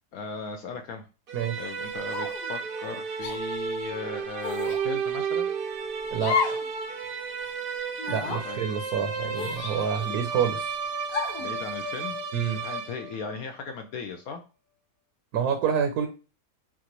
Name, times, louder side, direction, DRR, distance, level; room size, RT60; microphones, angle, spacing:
voice 1, 0.1-1.1 1.6-5.5 8.4-8.6 11.4-12.2 12.6-14.4, left 4 dB, 70° left, 5 dB, 1.0 m, -37 dB
sound 1, 1.3-13.4, right 5 dB, 55° right, 0.6 m, -33 dB
sound 2, 2.1-2.5 3.2-3.4 4.4-4.8 6.2-6.7 7.0-7.1 8.0-8.4 9.3-10.2 11.1-11.5, left 5 dB, 90° left, 1.5 m, -31 dB
voice 2, 8.1-10.7 12.3-12.6 15.3-16.1, right 7 dB, 70° right, 4 dB, 1.2 m, -27 dB
5.8 x 2.5 x 3.0 m, 0.32 s
omnidirectional pair, 1.7 m